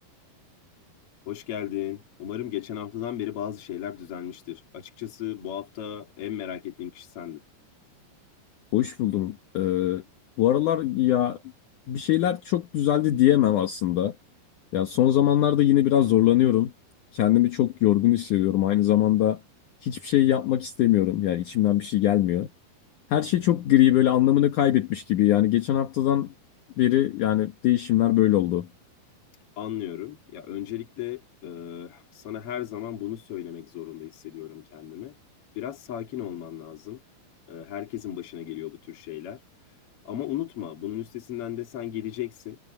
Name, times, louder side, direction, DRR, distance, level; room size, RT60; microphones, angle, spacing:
voice 1, 1.3-7.4 29.6-35.1 35.5-37.0 37.5-39.4 40.0-42.6, left 11 dB, 45° left, 2.0 m, -35 dB
voice 2, 8.7-10.0 10.4-11.4 11.9-14.1 14.7-16.7 17.1-19.4 19.8-22.5 23.1-26.3 26.8-28.7, left 13 dB, 70° left, 2.0 m, -22 dB
omnidirectional pair, 5.3 m